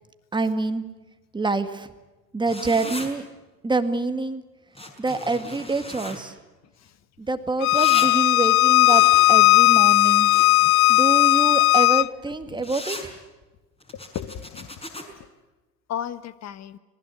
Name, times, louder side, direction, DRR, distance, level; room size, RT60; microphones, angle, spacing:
voice 1, 0.3-0.8 1.3-1.9 2.3-3.3 3.6-4.4 5.0-6.3 7.2-9.0 9.3-10.3 10.9-13.1, right 3 dB, 10° right, 9 dB, 1.9 m, -26 dB
sound 1, 2.5-3.1 4.7-6.2 7.7-8.1 8.8-10.7 12.6-13.1 13.8-15.0, left 1 dB, 10° left, 5.3 m, -37 dB
Bowed string instrument, 7.6-12.1, left 19 dB, 60° left, 0.7 m, -17 dB
voice 2, 14.1-14.7 15.9-16.8, left 9 dB, 30° left, 15 dB, 1.4 m, -35 dB
26.0 x 19.5 x 8.4 m, 1.2 s
hypercardioid pair, 85°, 48 cm